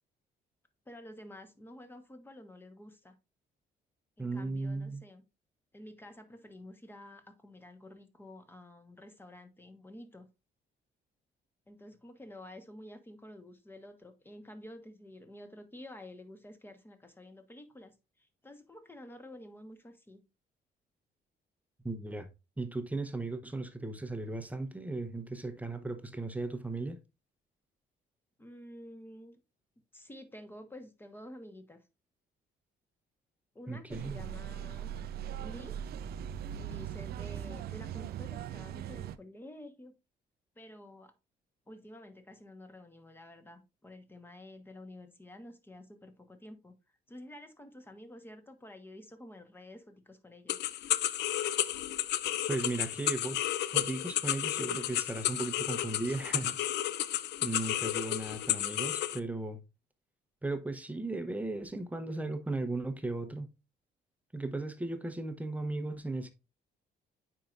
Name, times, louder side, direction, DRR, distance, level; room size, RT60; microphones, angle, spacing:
voice 1, 0.9-3.1 4.2-5.2 5.7-10.3 11.7-20.2 28.4-29.4 29.9-31.8 33.5-34.9 35.4-35.8 36.5-39.9 40.5-41.1 41.7-46.7 47.1-50.6, left 1 dB, 10° left, 1.2 m, -50 dB
voice 2, 4.2-5.0 21.8-22.3 22.6-27.0 33.7-34.2 52.5-53.4 53.7-56.6 57.4-59.6 60.4-63.5 64.3-66.3, right 2 dB, 10° right, 0.8 m, -36 dB
sound 1, 33.9-39.2, right 10 dB, 70° right, 0.5 m, -40 dB
sound 2, 50.5-59.2, left 13 dB, 85° left, 0.5 m, -32 dB
9.3 x 4.6 x 2.5 m
cardioid pair, 125°, 17 cm